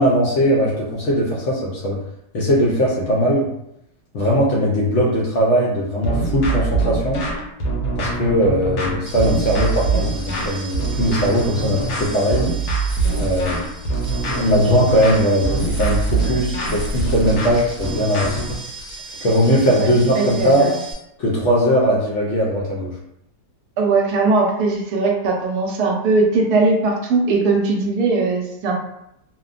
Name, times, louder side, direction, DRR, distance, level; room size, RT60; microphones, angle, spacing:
voice 1, 0.0-2.0 2.3-3.5 4.1-7.2 8.0-12.5 13.2-13.6 14.2-18.4 19.2-20.7 21.2-22.9, equal, 65° left, -6 dB, 0.7 m, -19 dB
sound 1, 6.0-18.7, right 3 dB, 80° left, 1.2 m, -23 dB
sound 2, 9.1-20.9, equal, 55° right, 0.9 m, -34 dB
voice 2, 19.7-20.7 23.8-28.7, right 3 dB, 80° right, 0 dB, 1.1 m, -19 dB
3.0 x 2.1 x 2.4 m, 0.80 s
omnidirectional pair, 1.7 m